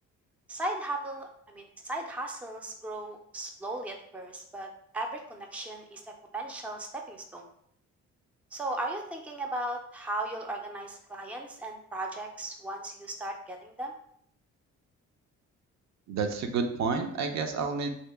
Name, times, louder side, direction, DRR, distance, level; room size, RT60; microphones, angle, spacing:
voice 1, 0.5-4.7 4.9-7.5 8.5-13.9, right 1 dB, 5° right, 2 dB, 0.4 m, -37 dB
voice 2, 16.1-17.9, right 5 dB, 65° right, 5 dB, 0.6 m, -30 dB
2.9 x 2.8 x 3.3 m, 0.68 s
cardioid pair, 90°, 30 cm